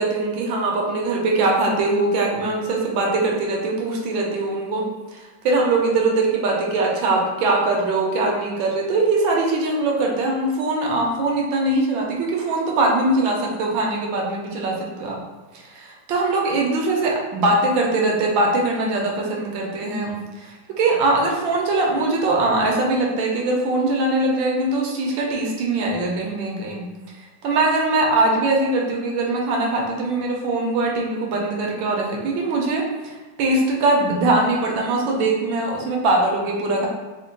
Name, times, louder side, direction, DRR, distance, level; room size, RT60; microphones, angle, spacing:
voice 1, 0.0-4.8 5.1-15.2 15.6-26.8 27.4-36.9, right 2 dB, 75° right, -1 dB, 1.3 m, -22 dB
4.3 x 2.2 x 2.6 m, 1.3 s
omnidirectional pair, 2.2 m